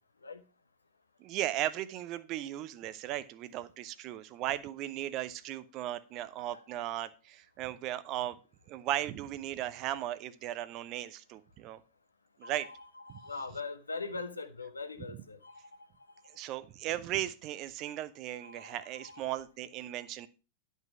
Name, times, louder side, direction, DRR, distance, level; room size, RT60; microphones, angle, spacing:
voice 1, 1.2-8.4 8.7-11.8 12.4-12.7 13.1-13.2 16.3-20.3, right 13 dB, 40° right, 0.6 m, -36 dB
voice 2, 12.4-15.7 18.4-19.4, left 3 dB, 80° left, 0.9 m, -42 dB
10.5 x 5.5 x 4.7 m
figure-of-eight pair, 90°, 0 cm